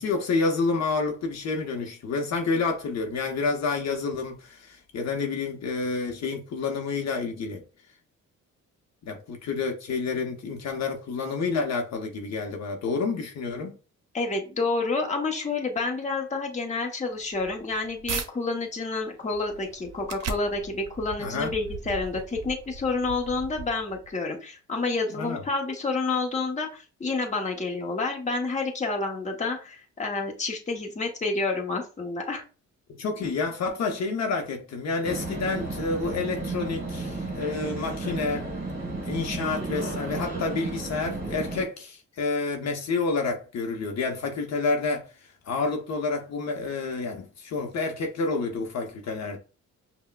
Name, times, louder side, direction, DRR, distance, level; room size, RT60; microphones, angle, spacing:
voice 1, 0.0-7.6 9.0-13.7 21.2-21.5 25.2-25.4 32.9-38.5 39.0-49.4, left 4 dB, 60° left, 0.8 m, -29 dB
voice 2, 14.1-32.4, left 3 dB, 25° left, 0.9 m, -29 dB
sound 1, 17.2-18.3 18.8-24.1, right 5 dB, 55° right, 0.7 m, -38 dB
sound 2, 35.0-41.6, right 2 dB, 35° right, 1.4 m, -33 dB
5.5 x 2.2 x 2.3 m
cardioid pair, 95°, 30 cm